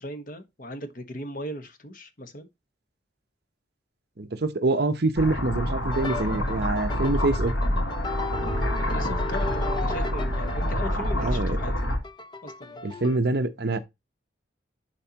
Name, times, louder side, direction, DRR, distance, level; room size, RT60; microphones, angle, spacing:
voice 1, 0.0-2.5 8.8-11.9 12.4-12.8, equal, 45° left, 1.3 m, -38 dB
voice 2, 4.2-7.5 11.2-11.6 12.8-13.8, right 2 dB, 55° right, 0.8 m, -25 dB
sound 1, 5.2-12.0, left 1 dB, 75° left, 3.2 m, -27 dB
sound 2, 5.9-13.2, left 3 dB, 20° left, 0.6 m, -36 dB
11.0 x 4.5 x 2.9 m
head